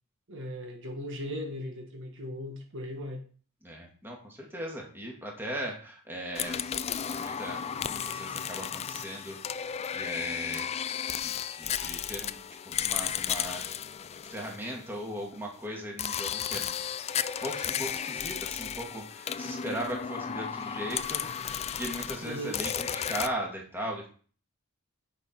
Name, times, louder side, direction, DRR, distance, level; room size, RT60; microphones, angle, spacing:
voice 1, 0.3-3.2 22.2-22.6, equal, 60° right, 3 dB, 1.6 m, -38 dB
voice 2, 3.6-6.6 7.1-10.7 11.2-12.4 12.8-13.7 14.3-16.7 17.4-24.1, equal, 10° right, -1 dB, 2.2 m, -38 dB
sound 1, 6.3-15.2 16.0-23.3, left 8 dB, 30° left, 0.3 m, -34 dB
9.9 x 5.8 x 4.6 m, 0.41 s
head